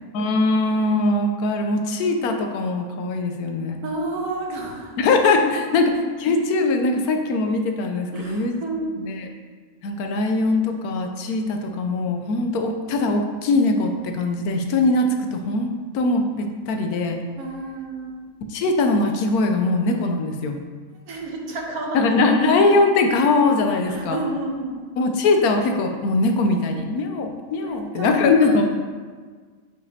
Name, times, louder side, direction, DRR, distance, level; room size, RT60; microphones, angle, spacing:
voice 1, 0.1-3.8 5.0-9.3 9.8-17.2 18.5-20.6 21.9-24.2 25.0-28.7, left 3 dB, 85° left, 4 dB, 1.2 m, -21 dB
voice 2, 3.8-5.0 5.4-5.9 8.1-8.9 17.4-18.2 21.1-22.4 23.8-24.8 27.6-28.6, right 2 dB, 85° right, 0 dB, 1.5 m, -31 dB
7.9 x 4.9 x 2.7 m, 1.5 s
omnidirectional pair, 1.5 m